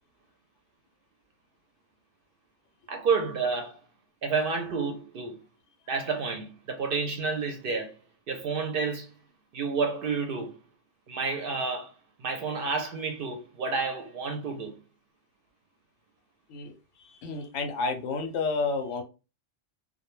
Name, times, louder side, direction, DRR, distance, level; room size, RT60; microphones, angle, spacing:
voice 1, 2.9-3.8 4.2-5.4 5.9-7.9 8.3-9.1 9.5-10.6 11.1-11.9 12.2-14.8, right 4 dB, 60° right, 0.6 m, -30 dB
voice 2, 16.5-19.0, left 4 dB, 80° left, 0.9 m, -31 dB
2.2 x 2.1 x 3.0 m
omnidirectional pair, 1.2 m